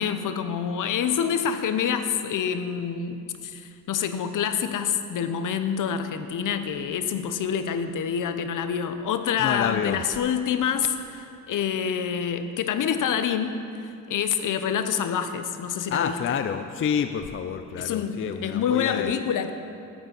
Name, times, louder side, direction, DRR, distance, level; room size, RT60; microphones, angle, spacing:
voice 1, 0.0-13.6 14.1-16.4 17.8-19.5, left 7 dB, 60° left, 9 dB, 0.8 m, -27 dB
voice 2, 9.4-10.0 15.9-19.1, left 7 dB, 40° left, 8 dB, 0.4 m, -28 dB
9.3 x 7.9 x 5.9 m, 2.5 s
cardioid pair, 90°, 35 cm